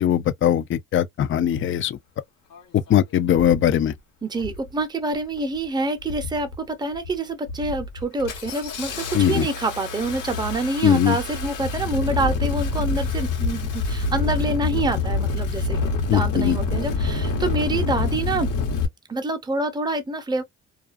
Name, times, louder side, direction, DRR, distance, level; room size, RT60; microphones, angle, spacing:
voice 1, 0.0-2.0 2.7-3.9 9.1-9.5 10.8-11.2 16.1-16.6, left 10 dB, 40° left, 0.4 m, -20 dB
Engine starting, 2.5-2.6 3.3-3.7 4.4-4.7 5.0-5.6 6.0-6.6 6.9-7.1 7.5-18.9, left 4 dB, 90° left, 1.1 m, -27 dB
voice 2, 4.2-18.5 19.1-20.4, right 2 dB, 15° right, 0.7 m, -27 dB
2.4 x 2.3 x 2.4 m
cardioid pair, 90°, 30 cm